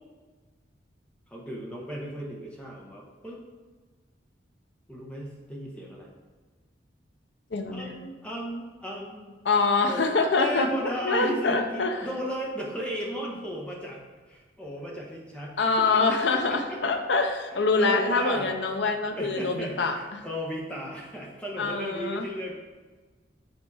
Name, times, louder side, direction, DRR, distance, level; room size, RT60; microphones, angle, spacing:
voice 1, 1.3-3.4 4.9-6.1 7.7-9.4 9.9-10.1 10.4-16.0 16.3-16.4 16.7-16.8 17.8-18.5 19.1-22.6, equal, 5° left, -2 dB, 1.2 m, -35 dB
voice 2, 7.5-8.1 9.4-12.0 15.6-20.2 21.6-22.3, left 3 dB, 75° left, 6 dB, 0.7 m, -25 dB
7.2 x 4.3 x 4.8 m, 1.3 s
head